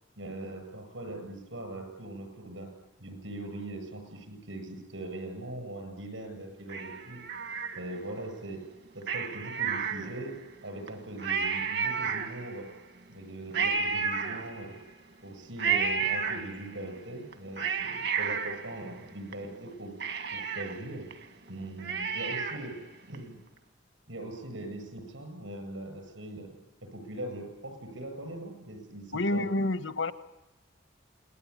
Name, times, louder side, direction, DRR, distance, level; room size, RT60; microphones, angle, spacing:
voice 1, 0.2-2.7 3.0-7.2 7.7-8.7 8.9-10.4 10.6-12.7 13.1-14.8 15.2-20.0 20.3-21.1 21.5-22.8 23.1-23.4 24.1-26.5 26.8-29.5, right 1 dB, 75° right, 6 dB, 7.8 m, -41 dB
Cat, 6.7-8.2 9.0-10.4 10.9-11.0 11.2-12.7 13.5-14.9 15.6-16.9 17.3-19.3 19.7-19.8 20.0-22.8 23.1-23.2, right 6 dB, 60° right, 2.1 m, -32 dB
voice 2, 29.1-30.1, left 2 dB, 75° left, 11 dB, 1.4 m, -28 dB
29.0 x 20.5 x 10.0 m, 0.98 s
head